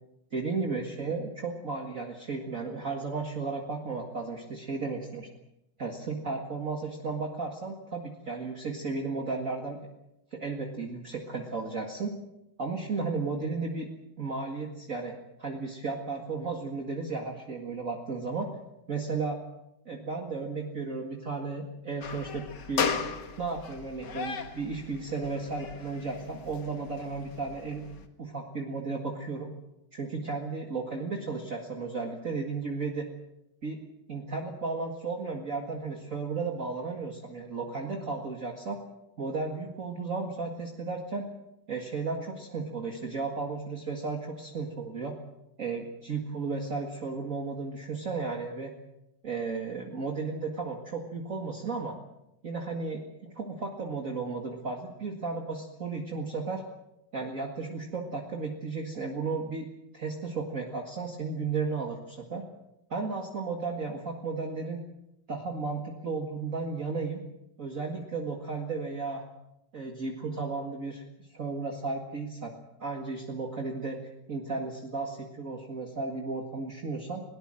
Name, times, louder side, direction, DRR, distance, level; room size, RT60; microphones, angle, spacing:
voice 1, 0.3-5.3 5.8-9.8 10.3-12.2 12.6-13.9 14.2-18.5 18.9-19.4 19.9-23.0 23.4-27.8 28.2-29.5 29.9-33.1 33.6-33.8 34.1-38.8 39.2-41.3 41.7-45.1 45.6-48.7 49.2-52.0 52.4-56.6 57.1-59.7 59.9-62.4 62.9-64.8 65.3-67.2 67.6-69.2 69.7-71.0 71.3-72.5 72.8-74.0 74.3-77.2, right 4 dB, 40° right, 2 dB, 2.2 m, -34 dB
sound 1, 22.0-28.1, left 6 dB, 55° left, 2.1 m, -36 dB
21.0 x 19.0 x 7.7 m, 0.83 s
omnidirectional pair, 2.3 m